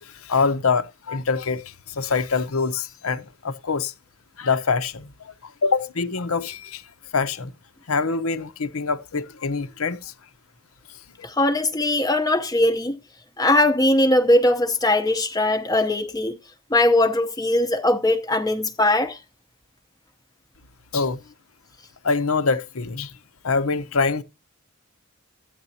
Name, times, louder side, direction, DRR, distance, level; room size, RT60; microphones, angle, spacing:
voice 1, 0.0-3.9 4.4-6.8 7.1-7.5 7.9-10.1 20.9-21.2 22.0-23.2 23.4-24.2, left 4 dB, 80° left, 0.8 m, -25 dB
voice 2, 11.2-13.0 13.4-16.4 16.7-19.2, left 1 dB, 15° left, 0.7 m, -20 dB
13.5 x 9.2 x 2.7 m
head